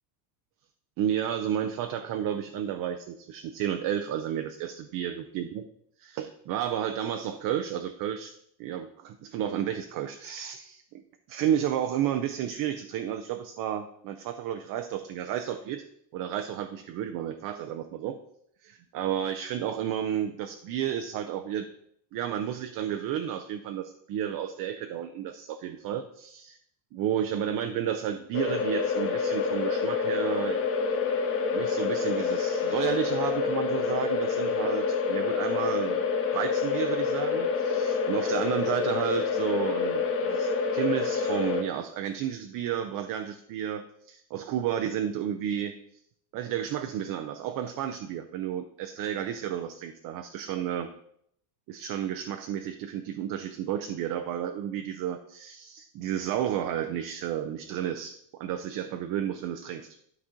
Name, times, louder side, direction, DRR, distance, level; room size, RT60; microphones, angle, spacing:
voice 1, 1.0-5.6 6.0-8.3 8.6-11.0 11.3-15.8 16.1-18.2 18.6-21.7 22.1-26.6 26.9-30.6 31.5-36.0 36.3-45.8 46.3-50.9 51.7-60.0, right 10 dB, 45° right, 7 dB, 0.5 m, -32 dB
sound 1, 28.3-41.6, left 5 dB, 25° left, 1.1 m, -27 dB
11.5 x 4.2 x 3.7 m, 0.70 s
supercardioid pair, 130°, 49 cm